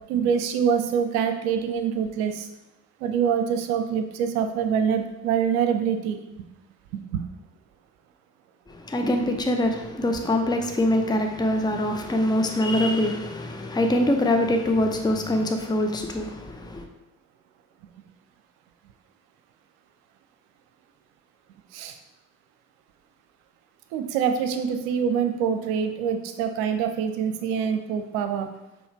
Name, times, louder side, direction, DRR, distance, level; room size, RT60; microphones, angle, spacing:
voice 1, 0.1-2.5 3.0-6.4 6.9-7.2 21.7-22.0 23.9-28.5, right 7 dB, 70° right, 7 dB, 0.7 m, -25 dB
voice 2, 8.7-16.8, left 1 dB, 10° left, 4 dB, 0.8 m, -24 dB
5.7 x 4.6 x 4.3 m, 0.96 s
figure-of-eight pair, 45°, 44 cm